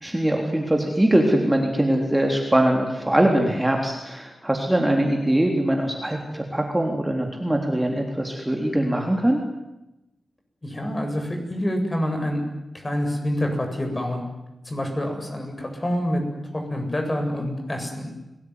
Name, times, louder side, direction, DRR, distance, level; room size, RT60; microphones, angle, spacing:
voice 1, 0.0-9.4, right 1 dB, 10° right, 1 dB, 3.7 m, -22 dB
voice 2, 10.6-12.4 12.7-14.2 14.6-16.2 16.5-18.1, equal, 25° left, 4 dB, 7.8 m, -27 dB
29.5 x 19.5 x 9.7 m, 0.94 s
wide cardioid pair, 85°, 0 cm